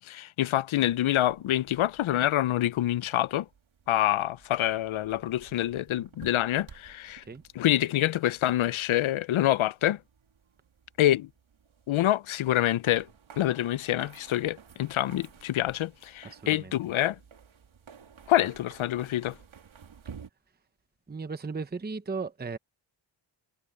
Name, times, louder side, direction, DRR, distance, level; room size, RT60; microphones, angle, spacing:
voice 1, 0.0-3.5 3.9-7.2 7.5-10.0 11.0-11.3 11.9-13.1 13.4-17.2 18.3-19.3, left 13 dB, 70° left, 0.5 m, -26 dB
sound 1, 0.9-20.3, right 7 dB, 70° right, 2.6 m, -54 dB
voice 2, 16.2-16.7 21.1-22.6, right 4 dB, 20° right, 0.8 m, -36 dB
wide cardioid pair, 170°, 49 cm